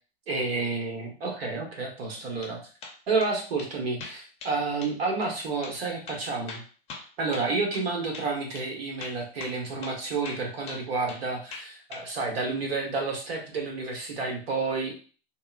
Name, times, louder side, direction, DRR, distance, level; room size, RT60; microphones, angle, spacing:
voice 1, 0.3-2.6 3.1-6.6 7.2-15.0, right 3 dB, 80° right, 1 dB, 1.2 m, -30 dB
sound 1, 2.1-2.5 2.8-3.3 3.6-3.7 4.0-4.6 4.8-5.0 5.2-5.3 5.6-5.8 6.1-7.9 8.1-8.3 8.5-8.7 9.0-9.6 9.8-10.0 10.2-11.2 11.5-12.1, left 4 dB, 20° left, 0.6 m, -42 dB
3.6 x 2.1 x 2.4 m, 0.39 s
hypercardioid pair, 145°, 30 cm